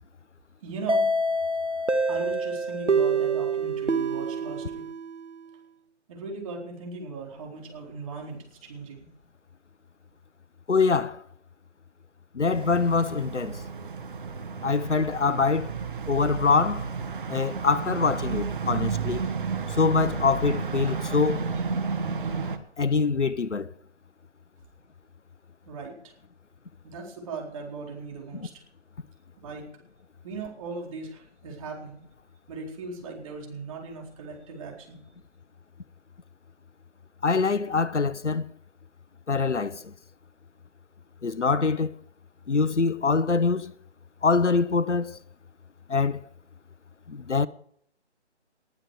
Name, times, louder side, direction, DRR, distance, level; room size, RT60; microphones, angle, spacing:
voice 1, 0.6-1.1 2.1-4.8 6.1-9.1 25.7-26.1 26.8-28.5 29.4-29.7 30.2-32.0 32.5-35.0, right 3 dB, 30° right, 4.2 m, -38 dB
sound 1, 0.9-5.6, right 3 dB, 80° right, 2.1 m, -26 dB
voice 2, 10.7-11.2 12.3-13.6 14.6-15.7 16.1-16.9 17.3-19.2 19.8-21.4 22.8-23.7 37.2-38.4 39.3-39.9 41.2-41.9 42.5-43.7 44.2-45.2 45.9-46.2 47.1-47.5, left 4 dB, 80° left, 1.0 m, -24 dB
sound 2, 12.4-22.6, right 5 dB, 45° right, 1.5 m, -32 dB
20.0 x 10.5 x 4.9 m
figure-of-eight pair, 150°, 35 cm